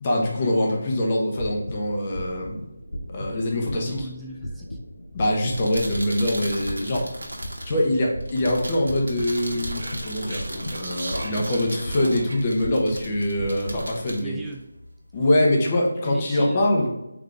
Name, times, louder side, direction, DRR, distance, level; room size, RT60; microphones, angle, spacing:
voice 1, 0.0-2.6 3.1-4.1 5.1-7.1 7.6-14.4 15.1-16.9, left 1 dB, 25° left, -2 dB, 0.9 m, -24 dB
sound 1, 1.3-13.8, equal, 75° left, 0.8 m, -37 dB
voice 2, 3.7-4.8 14.2-14.7 16.0-16.7, right 2 dB, 5° right, -1 dB, 0.3 m, -38 dB
sound 2, 5.4-15.2, right 1 dB, 85° right, 1.2 m, -37 dB
Speech, 9.2-12.6, right 1 dB, 65° right, 1.2 m, -38 dB
3.8 x 3.5 x 3.4 m, 0.93 s
figure-of-eight pair, 165°, 0 cm